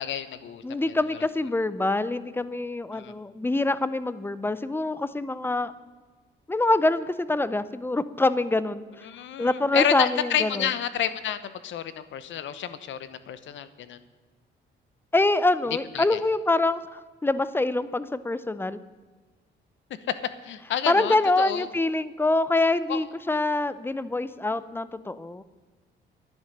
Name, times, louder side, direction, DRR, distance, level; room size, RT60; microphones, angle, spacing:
voice 1, 0.0-1.3 2.9-3.1 9.0-14.0 15.9-16.2 20.1-20.2 20.4-21.7 22.9-23.0, left 9 dB, 75° left, 13 dB, 0.9 m, -30 dB
voice 2, 0.6-5.7 6.5-8.8 9.4-10.7 15.1-18.8 20.9-25.4, left 2 dB, 10° left, 15 dB, 0.6 m, -25 dB
10.5 x 10.5 x 6.6 m, 1.4 s
cardioid pair, 90°, 20 cm